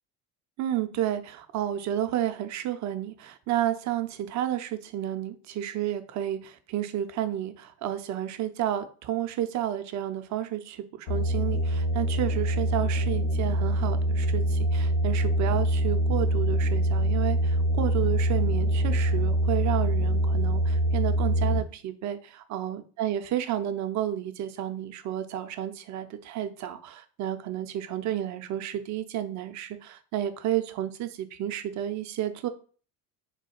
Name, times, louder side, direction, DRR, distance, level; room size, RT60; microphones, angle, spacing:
voice 1, 0.6-32.5, right 11 dB, 45° right, 9 dB, 0.6 m, -31 dB
sound 1, 11.1-21.6, right 1 dB, 70° left, 1.4 m, -25 dB
4.0 x 2.3 x 4.3 m, 0.40 s
hypercardioid pair, 75°, 42 cm